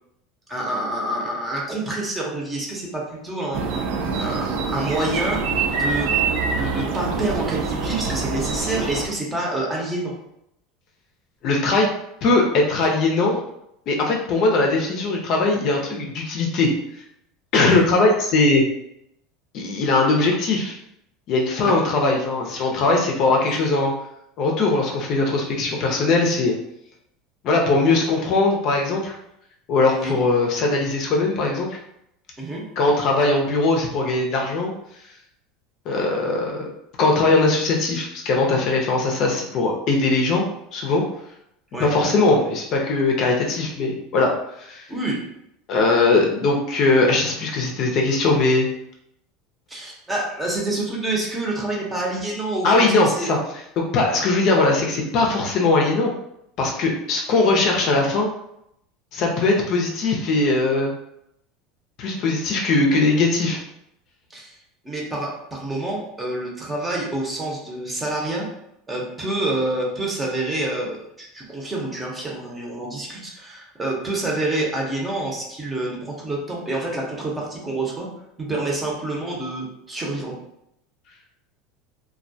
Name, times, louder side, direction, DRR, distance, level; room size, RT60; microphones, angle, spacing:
voice 1, 0.5-3.8 4.1-5.4 5.7-6.2 6.5-10.1 17.8-17.9 21.6-21.8 29.9-30.2 32.4-32.6 41.7-42.1 44.9-45.2 49.7-53.3 64.3-64.6 64.8-68.4 68.9-78.1 78.4-80.3, right 2 dB, 15° right, -3 dB, 0.7 m, -27 dB
sound 1, 3.5-9.1, right 5 dB, 75° right, 0.3 m, -25 dB
voice 2, 11.4-11.9 12.2-13.4 13.9-16.7 17.5-18.6 19.5-20.8 21.3-23.9 24.4-26.5 27.4-29.1 29.7-31.8 32.8-34.7 35.9-36.7 37.0-41.0 41.8-44.9 45.7-48.7 52.6-53.4 53.8-56.1 56.6-58.3 59.1-60.9 62.0-63.6, left 3 dB, 50° left, 0 dB, 0.5 m, -20 dB
2.2 x 2.1 x 2.6 m, 0.78 s
supercardioid pair, 115°, 0 cm